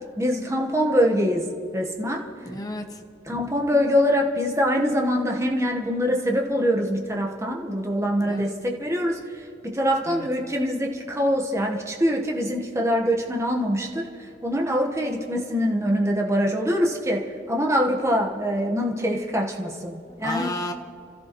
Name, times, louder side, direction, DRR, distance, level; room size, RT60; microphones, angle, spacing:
voice 1, 0.2-1.5 1.7-2.2 3.3-14.1 14.4-20.5, equal, 15° right, 0 dB, 1.2 m, -24 dB
voice 2, 2.4-3.0 8.3-8.5 10.0-10.3 20.0-20.7, left 1 dB, 20° left, 3 dB, 1.0 m, -32 dB
29.5 x 14.0 x 3.0 m, 2.4 s
head